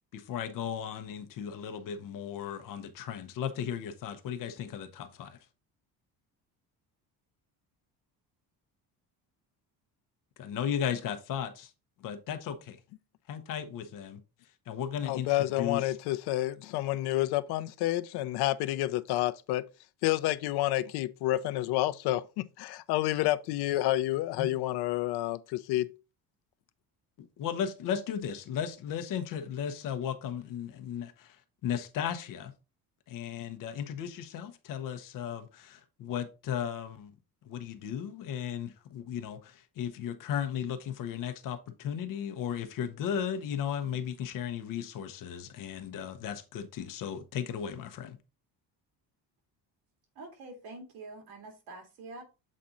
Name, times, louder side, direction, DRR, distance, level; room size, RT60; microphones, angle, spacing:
voice 1, 0.1-5.4 10.4-11.7 12.0-12.8 13.3-14.2 14.7-16.0 24.4-24.5 27.4-32.5 33.1-37.1 37.4-48.2, left 8 dB, 60° left, 1.0 m, -35 dB
voice 2, 15.0-19.6 20.0-25.9, left 15 dB, 90° left, 0.6 m, -29 dB
voice 3, 50.2-52.2, right 2 dB, 70° right, 2.4 m, -46 dB
7.5 x 4.2 x 3.8 m
cardioid pair, 165°, 38 cm